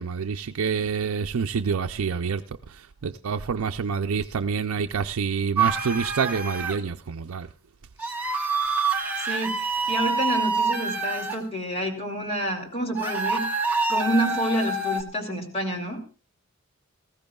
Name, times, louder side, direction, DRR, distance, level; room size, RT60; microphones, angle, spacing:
voice 1, 0.0-2.4 2.7-7.5, right 6 dB, 85° right, 0.5 m, -27 dB
Screams - Male High Pitched, 5.6-6.8 8.0-11.4 13.0-15.0, right 4 dB, 10° right, 1.2 m, -26 dB
voice 2, 9.2-13.5 13.9-16.0, right 1 dB, 30° left, 2.6 m, -28 dB
19.0 x 15.0 x 2.3 m
head